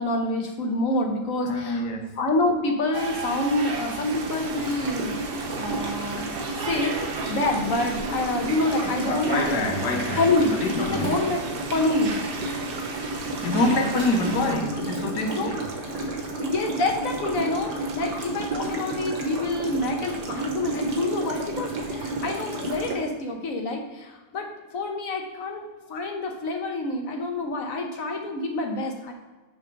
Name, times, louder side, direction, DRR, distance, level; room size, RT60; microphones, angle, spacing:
voice 1, 0.0-1.9 2.2-5.2 5.6-9.6 10.2-11.4 11.7-12.2 15.3-15.6 16.4-29.1, left 2 dB, 55° left, 2 dB, 1.4 m, -27 dB
voice 2, 1.4-2.1 8.8-10.2 10.5-11.2 13.4-15.6, left 2 dB, 70° left, 3 dB, 1.6 m, -26 dB
sound 1, 2.9-14.5, right 4 dB, 55° right, 0.6 m, -35 dB
sound 2, 4.1-23.0, right 2 dB, 70° right, 1.7 m, -32 dB
sound 3, 10.0-13.6 13.9-14.2 14.7-15.0, equal, 20° left, 2.5 m, -47 dB
6.6 x 4.4 x 5.3 m, 1.2 s
omnidirectional pair, 1.8 m